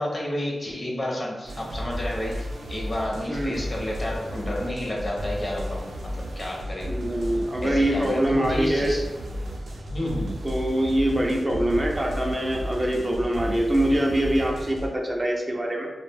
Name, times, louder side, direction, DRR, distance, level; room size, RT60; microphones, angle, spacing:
voice 1, 0.0-6.9 7.6-9.0 9.9-10.4, left 1 dB, 35° left, -2 dB, 0.7 m, -30 dB
sound 1, 1.4-14.9, equal, 85° right, 0.4 m, -33 dB
voice 2, 6.8-9.0 10.4-15.9, right 1 dB, 25° right, 0 dB, 0.4 m, -24 dB
2.3 x 2.0 x 3.3 m, 1.2 s
cardioid pair, 70°, 0 cm